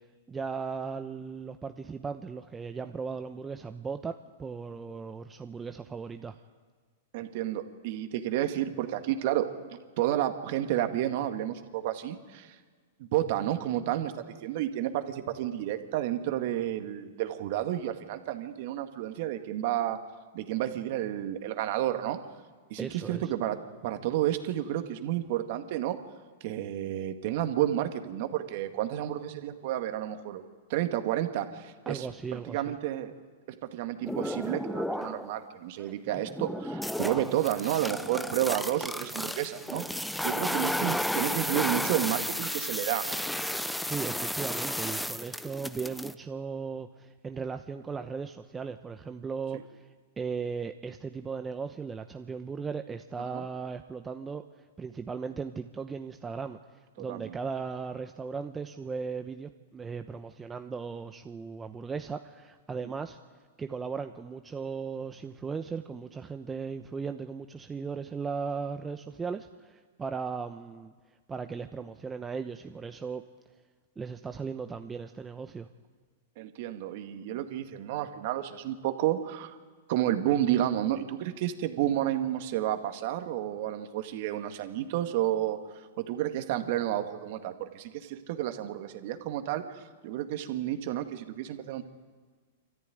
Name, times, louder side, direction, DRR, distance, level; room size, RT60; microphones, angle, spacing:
voice 1, 0.3-4.1 4.4-6.3 22.8-23.3 31.9-32.8 43.8-49.9 50.2-54.4 54.8-63.2 63.6-70.9 71.3-73.2 74.0-75.7, right 5 dB, 15° right, 7 dB, 0.9 m, -37 dB
voice 2, 7.1-9.5 10.0-12.6 13.0-20.0 20.3-22.2 22.7-23.6 23.8-26.0 26.4-30.4 30.7-32.1 32.3-33.1 33.7-43.2 49.5-49.6 53.3-53.4 57.1-57.4 76.4-79.6 79.9-91.8, right 12 dB, 55° right, 7 dB, 2.0 m, -31 dB
sound 1, 34.0-35.4 35.8-46.1, left 1 dB, ahead, 0.8 m, -33 dB
25.5 x 14.0 x 9.4 m, 1.5 s
hypercardioid pair, 115°, 0 cm